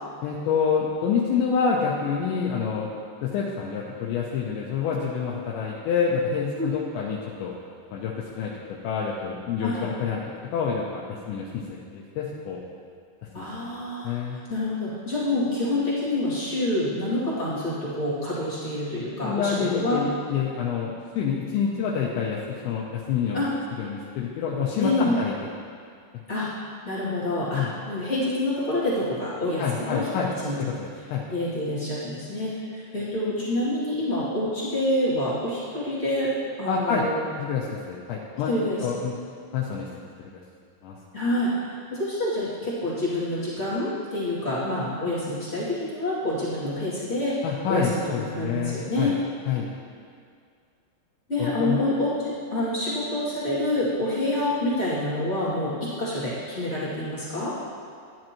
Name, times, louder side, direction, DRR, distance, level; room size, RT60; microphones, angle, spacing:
voice 1, 0.2-2.9 3.2-7.5 7.9-8.5 8.8-10.2 10.5-11.6 11.9-12.6 13.4-13.5 14.0-14.4 19.2-23.4 23.8-25.3 27.5-27.7 29.6-30.3 30.6-31.2 36.7-37.1 37.4-38.5 38.8-39.1 39.5-39.9 40.2-40.4 40.8-41.0 47.4-49.1 49.5-49.7 51.4-51.9, left 6 dB, 80° left, -4 dB, 2.9 m, -27 dB
voice 2, 13.3-20.0 23.3-23.5 24.8-25.2 26.3-26.5 26.8-30.1 30.4-30.6 31.3-36.3 36.6-37.3 38.5-38.8 41.1-41.5 41.9-47.4 47.7-49.2 51.3-57.5, left 1 dB, 25° left, -10 dB, 1.6 m, -27 dB
12.5 x 10.5 x 3.0 m, 2.2 s
omnidirectional pair, 5.5 m